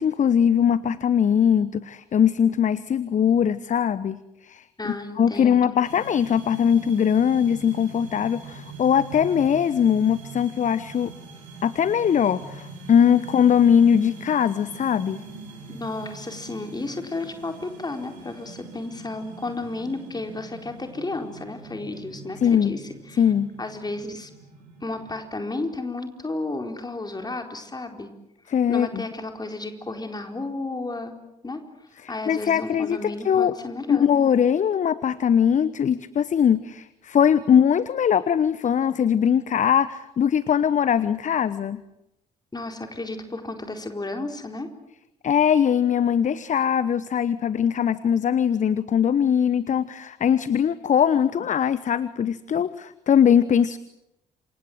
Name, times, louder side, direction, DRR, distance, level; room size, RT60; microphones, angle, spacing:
voice 1, 0.0-4.6 5.2-11.1 11.6-15.2 22.4-22.8 23.2-23.5 28.5-29.0 32.3-33.5 33.9-41.8 45.2-53.8, left 8 dB, 35° left, 17 dB, 1.0 m, -21 dB
voice 2, 4.8-5.7 15.7-23.3 23.6-24.3 24.8-28.1 28.7-31.1 31.4-34.1 42.5-44.7, left 2 dB, 20° left, 5 dB, 4.3 m, -33 dB
sound 1, 5.8-25.1, right 3 dB, 70° right, 6.9 m, -43 dB
28.0 x 25.5 x 8.0 m, 0.87 s
figure-of-eight pair, 45°, 20 cm